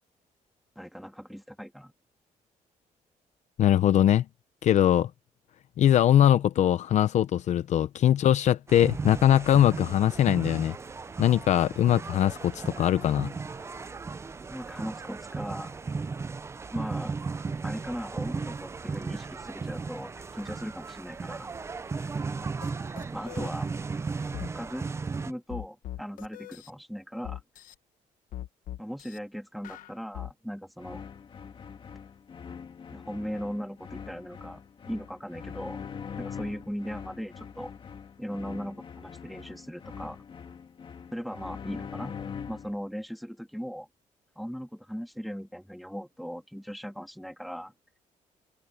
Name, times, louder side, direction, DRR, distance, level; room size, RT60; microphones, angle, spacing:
voice 1, 0.8-1.9 14.5-15.7 16.7-17.1 17.6-21.5 23.1-23.7 24.5-24.9 25.2-27.4 28.8-31.1 32.9-34.6 34.9-35.8 36.2-37.7 38.2-40.2 41.1-42.2 42.5-43.9 44.4-47.7, equal, ahead, 2.4 m, -38 dB
voice 2, 3.6-4.2 4.6-5.1 5.8-10.8 11.2-13.3, left 11 dB, 60° left, 0.7 m, -22 dB
sound 1, 8.7-25.3, right 4 dB, 20° right, 0.5 m, -36 dB
sound 2, 22.6-22.7 23.0-23.5 24.3-24.5 25.5-26.7 27.2-27.7 28.3-29.2 29.6-30.3, left 13 dB, 85° left, 1.2 m, -40 dB
sound 3, 30.8-42.8, left 7 dB, 40° left, 2.2 m, -42 dB
cardioid pair, 155°, 13 cm